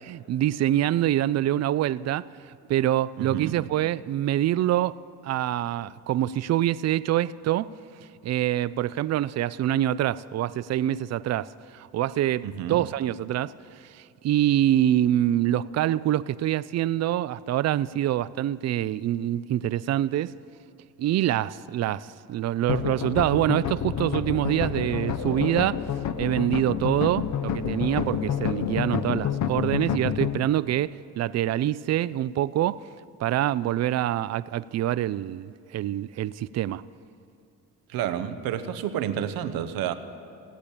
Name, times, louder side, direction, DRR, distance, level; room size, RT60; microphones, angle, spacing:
voice 1, 0.0-2.3 2.7-5.0 5.2-7.7 8.2-13.5 13.9-20.3 21.0-25.8 26.2-32.8 33.2-36.8, right 12 dB, 50° right, 0.4 m, -25 dB
voice 2, 3.2-3.6 12.4-12.8 37.9-39.9, right 10 dB, 85° right, 0.9 m, -30 dB
sound 1, 22.7-30.4, left 8 dB, 55° left, 0.8 m, -28 dB
16.5 x 8.6 x 8.4 m
cardioid pair, 80°, 34 cm